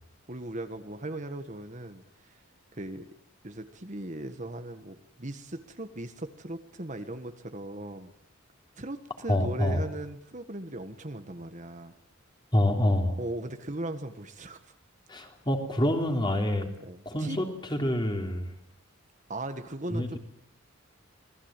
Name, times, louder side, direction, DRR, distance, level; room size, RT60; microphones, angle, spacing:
voice 1, 0.3-2.4 2.7-3.0 3.4-8.1 8.8-11.9 13.2-14.7 16.8-17.4 19.3-20.2, right 1 dB, 35° right, 8 dB, 1.5 m, -38 dB
voice 2, 9.3-9.8 12.5-13.2 15.1-16.7 17.1-18.5 19.9-20.2, left 1 dB, 20° left, 4 dB, 3.4 m, -27 dB
27.0 x 20.0 x 9.0 m, 0.72 s
head